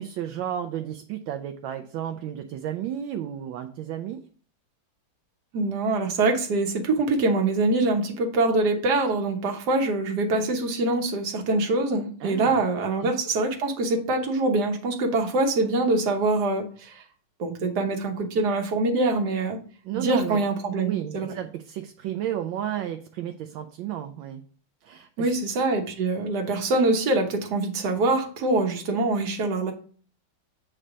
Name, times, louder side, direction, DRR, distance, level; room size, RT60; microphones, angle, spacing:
voice 1, 0.0-4.3 12.2-12.6 13.0-13.2 19.8-20.4 20.8-24.4 24.8-25.3, right 10 dB, 75° right, 7 dB, 1.3 m, -32 dB
voice 2, 5.5-17.0 17.4-19.6 19.9-21.3 25.2-29.7, right 2 dB, 60° right, 4 dB, 1.5 m, -24 dB
7.5 x 3.3 x 4.9 m, 0.42 s
omnidirectional pair, 2.2 m